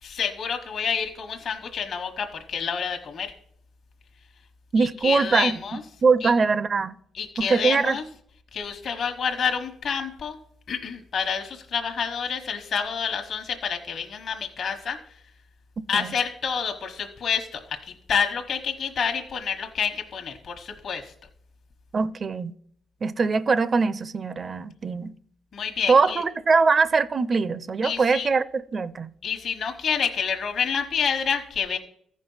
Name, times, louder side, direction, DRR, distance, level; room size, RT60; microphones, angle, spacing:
voice 1, 0.0-3.3 4.8-5.8 6.2-6.3 7.1-8.0 8.5-10.4 10.7-15.0 15.9-21.1 25.5-26.2 27.8-28.3 29.2-31.8, left 6 dB, 55° left, 1.2 m, -28 dB
voice 2, 4.7-5.6 6.0-6.9 7.4-8.0 15.9-16.1 21.9-22.5 23.0-25.1 25.9-29.1, right 4 dB, 40° right, 0.5 m, -22 dB
14.0 x 5.2 x 5.5 m
cardioid pair, 90°, 0 cm